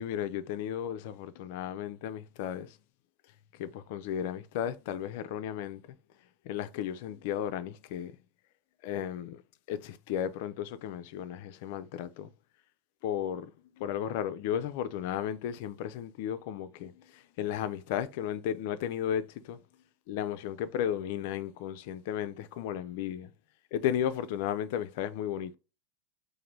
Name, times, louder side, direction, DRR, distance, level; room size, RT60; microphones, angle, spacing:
voice 1, 0.0-2.8 3.5-5.8 6.4-8.1 8.8-9.4 9.7-12.3 13.0-13.5 13.8-19.6 20.1-23.3 23.7-25.6, left 10 dB, 65° left, 0.4 m, -34 dB
3.8 x 2.6 x 3.1 m
hypercardioid pair, 95°, 0 cm